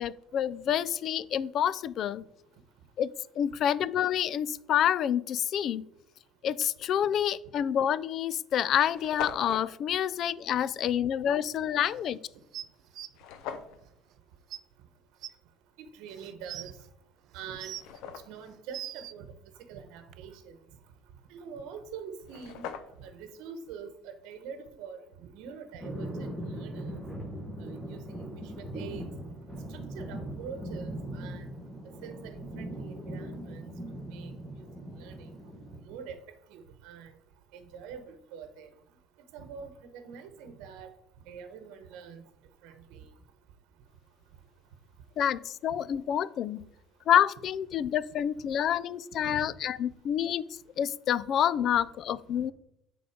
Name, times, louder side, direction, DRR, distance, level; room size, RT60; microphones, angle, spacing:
voice 1, 0.0-2.2 3.0-3.1 3.4-5.8 6.4-12.2 45.2-46.6 47.1-50.4 50.8-52.5, left 9 dB, 40° left, 18 dB, 0.3 m, -28 dB
sound 1, 7.3-7.5 8.2-8.3 8.5-8.6 8.8-9.7 13.1-13.8 16.7-16.8 17.4-18.5 21.9-22.0 22.2-23.2, left 8 dB, 70° left, 0.8 m, -41 dB
sound 2, 12.5-13.1 14.1-14.2 14.5-14.6 15.2-15.3 16.1-16.7 17.4-18.0 18.5-19.1 20.1-20.2, right 12 dB, 45° right, 0.4 m, -40 dB
voice 2, 15.9-16.7 17.3-17.7 18.3-19.3 19.7-20.6 21.3-22.7 23.0-27.0 27.6-28.3 28.6-29.1 29.7-31.5 32.0-33.8 34.1-34.3 35.0-35.3 35.8-36.2 36.5-37.1 37.5-38.7 39.3-40.9 41.3-42.3 42.6-43.0 49.2-49.5, right 6 dB, 75° right, 9 dB, 1.0 m, -44 dB
sound 3, 25.8-35.8, right 1 dB, 5° left, 1.2 m, -40 dB
9.7 x 3.8 x 5.0 m, 0.77 s
cardioid pair, 175°, 0 cm